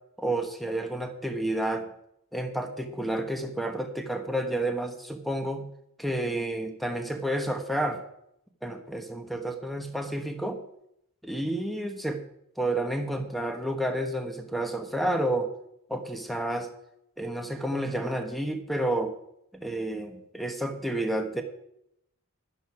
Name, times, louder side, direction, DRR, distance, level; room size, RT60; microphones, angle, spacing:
voice 1, 0.2-1.9 2.3-5.7 6.0-8.0 8.6-10.6 11.2-12.2 12.6-15.5 15.9-16.7 17.2-19.1 19.5-21.4, right 1 dB, ahead, 6 dB, 1.2 m, -30 dB
11.5 x 10.5 x 4.9 m, 0.75 s
head